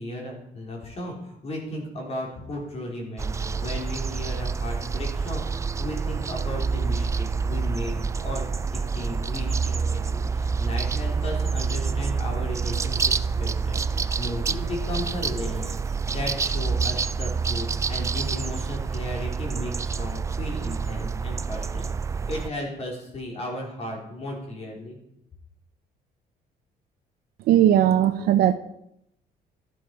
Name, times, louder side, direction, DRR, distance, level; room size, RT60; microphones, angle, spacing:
voice 1, 0.0-25.0, left 1 dB, 40° left, -1 dB, 4.2 m, -35 dB
sound 1, 3.2-22.5, right 5 dB, 20° right, 0.3 m, -27 dB
voice 2, 27.5-28.6, right 11 dB, 75° right, 9 dB, 0.6 m, -18 dB
12.0 x 11.5 x 4.8 m, 0.79 s
cardioid pair, 125°, 16 cm